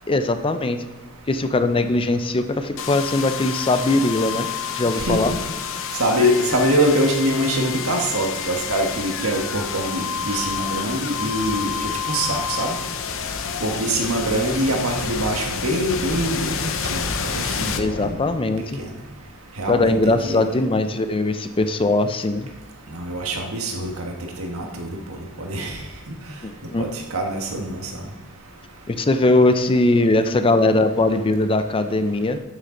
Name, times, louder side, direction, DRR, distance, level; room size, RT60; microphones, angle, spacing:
voice 1, 0.1-0.9 1.3-4.5 4.7-5.3 17.8-18.8 19.7-22.5 26.4-26.8 28.9-32.4, left 2 dB, 25° left, 9 dB, 0.5 m, -20 dB
sound 1, 2.8-18.6, left 6 dB, 65° left, 0.7 m, -29 dB
voice 2, 4.9-5.4 6.0-11.7 12.1-12.7 13.6-17.1 17.3-18.2 18.8-18.9 19.6-20.6 22.9-24.1 24.4-25.0 25.4-25.8 26.8-27.8, right 1 dB, 90° right, 2 dB, 1.5 m, -24 dB
12.5 x 6.5 x 3.9 m, 1.1 s
head